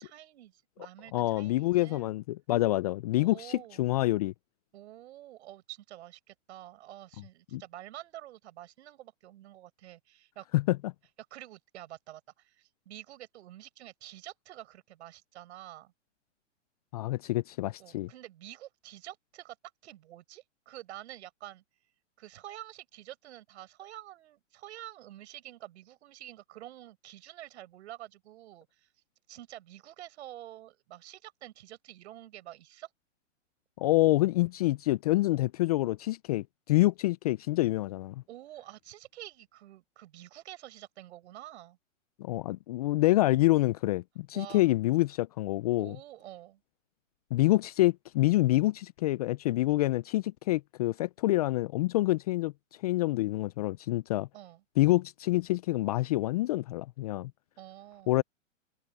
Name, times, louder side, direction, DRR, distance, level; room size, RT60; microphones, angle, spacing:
voice 1, 0.0-2.1 3.2-3.9 4.7-10.5 11.3-15.9 17.8-19.6 19.8-21.6 22.2-28.9 29.3-32.9 38.3-41.8 44.3-44.7 45.7-46.6 54.3-54.6 57.6-58.2, right 14 dB, 60° right, 7.0 m, -48 dB
voice 2, 1.1-4.3 7.5-7.6 10.5-10.9 16.9-18.1 33.8-38.1 42.2-46.0 47.3-52.5 52.8-54.3 54.8-57.3 58.1-58.2, left 17 dB, 30° left, 0.4 m, -27 dB
hypercardioid pair, 130°, 38 cm